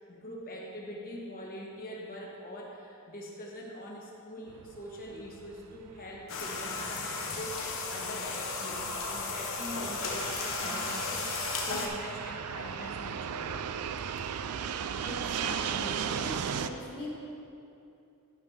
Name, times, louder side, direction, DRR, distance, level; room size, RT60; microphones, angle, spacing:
voice 1, 0.0-11.3 11.6-13.7, equal, 40° left, -3 dB, 1.5 m, -43 dB
Fixed-wing aircraft airplane, 4.5-16.7, right 7 dB, 85° right, 0.4 m, -37 dB
sound 1, 6.3-11.9, left 4 dB, 60° left, 1.1 m, -35 dB
voice 2, 15.0-17.3, equal, 20° left, -6 dB, 1.1 m, -41 dB
12.0 x 5.3 x 5.7 m, 2.7 s
head